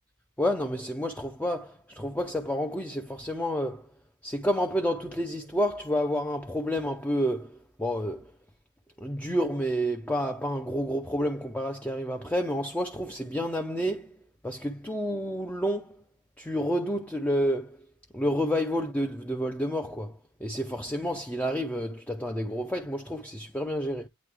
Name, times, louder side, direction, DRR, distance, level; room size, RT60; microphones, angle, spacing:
voice 1, 0.4-3.9 4.2-8.3 9.0-14.2 14.4-16.0 16.4-17.9 18.1-24.1, equal, 5° left, 0.4 m, -29 dB
8.9 x 3.1 x 3.4 m
head